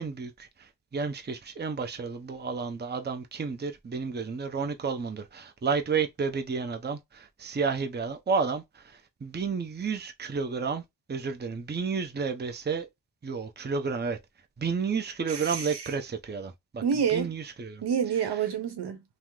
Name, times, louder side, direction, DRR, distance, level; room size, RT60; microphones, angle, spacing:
voice 1, 0.0-10.8 11.1-12.9 13.2-14.2 14.6-17.8, right 5 dB, 25° right, 0.7 m, -31 dB
voice 2, 15.3-15.9 16.8-17.3 17.8-19.0, right 7 dB, 75° right, 0.9 m, -28 dB
2.9 x 2.0 x 3.6 m
cardioid pair, 40°, 40 cm